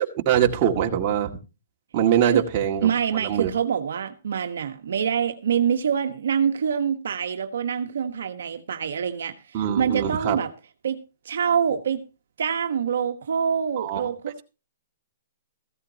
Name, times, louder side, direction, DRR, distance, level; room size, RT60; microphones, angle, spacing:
voice 1, 0.0-1.3 1.9-3.5 9.5-10.4 13.8-14.1, right 9 dB, 35° right, 2.0 m, -23 dB
voice 2, 2.8-10.5 10.8-11.0 11.2-12.0 12.4-14.4, right 7 dB, 80° right, 1.3 m, -25 dB
15.0 x 13.0 x 2.8 m
hypercardioid pair, 145°, 0 cm